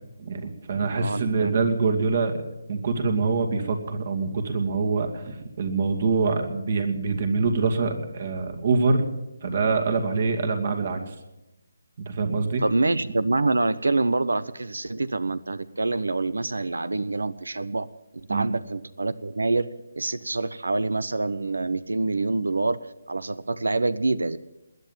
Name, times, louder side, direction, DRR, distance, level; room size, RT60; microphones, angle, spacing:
voice 1, 0.2-2.4 2.7-9.1 9.4-11.1 12.0-12.6 18.3-18.5, right 4 dB, 50° right, 5 dB, 2.4 m, -25 dB
voice 2, 0.9-1.5 12.6-17.9 18.1-22.8 23.1-24.4, right 3 dB, 80° right, 17 dB, 0.8 m, -26 dB
21.0 x 9.3 x 7.3 m, 0.93 s
figure-of-eight pair, 155°, 0 cm